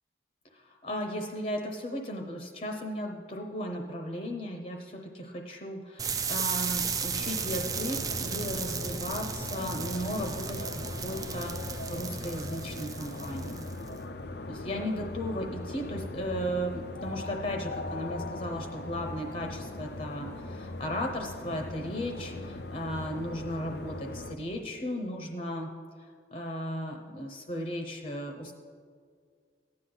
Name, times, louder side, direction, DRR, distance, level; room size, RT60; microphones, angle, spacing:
voice 1, 0.5-13.7 14.5-25.7 26.3-28.5, equal, 45° left, 3 dB, 0.8 m, -36 dB
sound 1, 6.0-13.9, right 6 dB, 20° right, 0.4 m, -35 dB
sound 2, 7.1-24.4, left 2 dB, 70° left, 0.6 m, -40 dB
15.5 x 9.7 x 3.9 m, 2.1 s
head